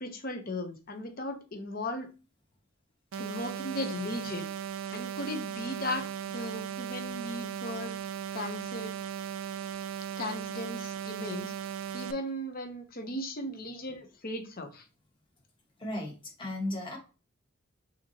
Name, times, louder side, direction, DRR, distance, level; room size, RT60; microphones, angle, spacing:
voice 1, 0.0-2.1 3.2-4.5 4.9-6.1 6.3-7.9 8.3-8.9 10.2-11.5 11.9-14.9, left 1 dB, 45° left, 6 dB, 0.8 m, -37 dB
sound 1, 3.1-12.1, right 9 dB, 60° right, 0.3 m, -37 dB
voice 2, 15.8-17.0, left 1 dB, 25° left, -1 dB, 1.4 m, -35 dB
5.6 x 2.9 x 2.8 m, 0.32 s
head